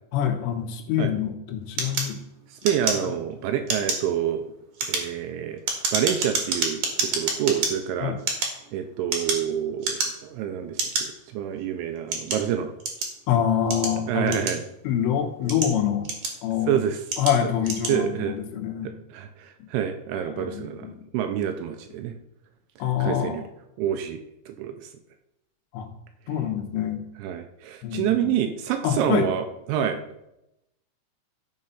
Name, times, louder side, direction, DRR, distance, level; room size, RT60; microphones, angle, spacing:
voice 1, 0.1-2.2 3.0-3.1 8.0-8.2 13.3-14.4 14.8-16.1 16.4-16.8 17.2-18.9 19.6-19.7 20.2-21.0 22.8-23.5 25.7-25.9 26.3-27.0 27.8-28.3 28.8-29.3, left 9 dB, 80° left, 4 dB, 3.5 m, -26 dB
sound 1, 1.8-3.3 3.6-4.1 4.6-7.7 8.2-9.5 9.8-10.3 10.8-11.0 11.7-13.2 13.7-14.9 15.3-16.5 17.1-17.4 17.6-18.0, right 4 dB, 55° right, 2.4 m, -28 dB
voice 2, 2.6-4.4 4.8-5.6 5.9-8.2 8.7-12.7 14.1-14.6 16.7-17.0 17.9-18.4 18.8-22.2 23.0-23.4 23.8-24.2 24.5-24.9 27.2-29.4 29.7-30.0, right 9 dB, 80° right, 7 dB, 2.9 m, -27 dB
14.0 x 5.5 x 5.6 m, 0.86 s
omnidirectional pair, 5.9 m